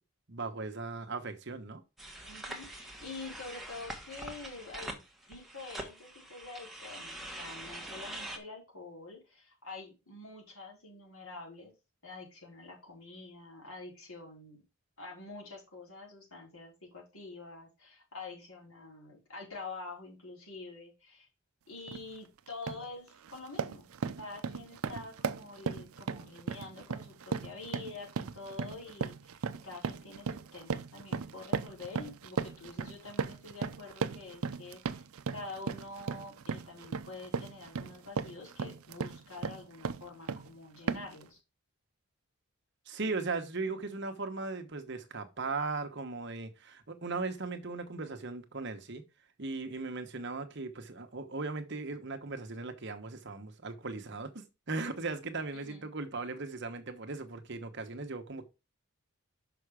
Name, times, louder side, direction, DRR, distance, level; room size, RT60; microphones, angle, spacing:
voice 1, 0.3-1.8 42.9-49.0 49.4-58.5, right 3 dB, 50° right, 1.1 m, -38 dB
sound 1, 2.0-8.4, right 1 dB, ahead, 1.2 m, -44 dB
voice 2, 2.2-5.0 5.3-11.7 12.0-14.6 15.0-21.3 21.7-23.9 24.2-35.0 35.3-41.4 55.5-55.9, left 3 dB, 75° left, 4.6 m, -47 dB
sound 2, 21.9-22.1 22.5-22.9 23.2-40.5 40.9-41.2, right 5 dB, 75° right, 0.5 m, -37 dB
6.0 x 5.9 x 5.0 m
head